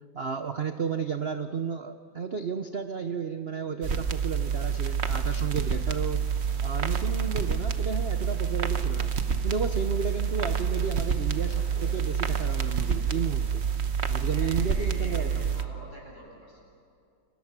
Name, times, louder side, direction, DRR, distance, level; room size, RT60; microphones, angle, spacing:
voice 1, 0.1-6.2 6.6-9.1 9.4-13.6 14.1-15.5, right 6 dB, 85° right, 8 dB, 0.5 m, -33 dB
sound 1, 3.8-15.6, right 7 dB, 40° right, 1.0 m, -28 dB
sound 2, 4.9-13.5, equal, 20° left, 7.1 m, -54 dB
voice 2, 14.3-16.8, equal, 50° left, -3 dB, 8.3 m, -46 dB
29.5 x 24.5 x 6.0 m, 2.5 s
omnidirectional pair, 2.3 m